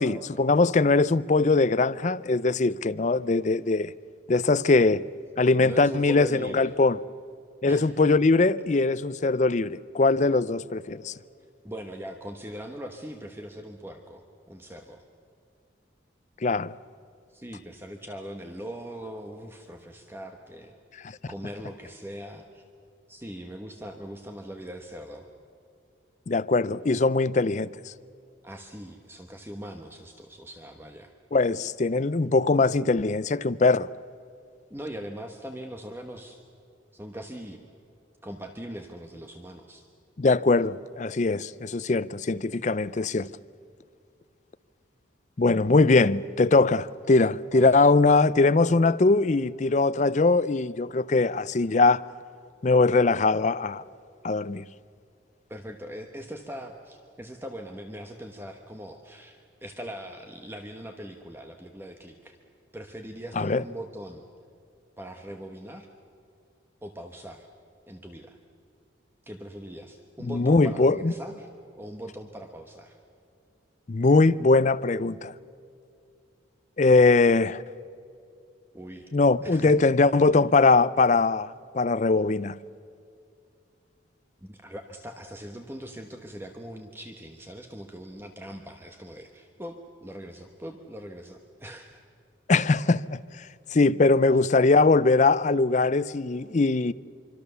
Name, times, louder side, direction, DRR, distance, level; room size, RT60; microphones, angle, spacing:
voice 1, 0.0-3.9 4.3-5.0 5.4-7.0 7.6-11.1 16.4-16.7 26.3-27.7 31.3-33.9 40.2-43.3 45.4-52.0 52.6-53.8 54.2-54.6 63.4-63.6 70.2-71.1 73.9-75.3 76.8-77.6 79.1-82.6 92.5-93.2 93.7-96.9, left 3 dB, 40° left, 0.5 m, -21 dB
voice 2, 5.6-6.8 7.6-7.9 11.6-15.0 17.3-20.7 21.0-22.6 23.1-25.3 28.4-31.1 34.7-36.4 36.9-37.6 38.2-39.8 47.5-47.8 55.5-62.4 62.7-64.2 65.0-65.9 66.8-67.5 67.9-68.4 69.3-71.5 71.8-73.0 78.7-79.1 79.4-79.7 80.1-80.2 84.4-92.0, equal, 10° right, 1.1 m, -41 dB
25.0 x 25.0 x 6.9 m
head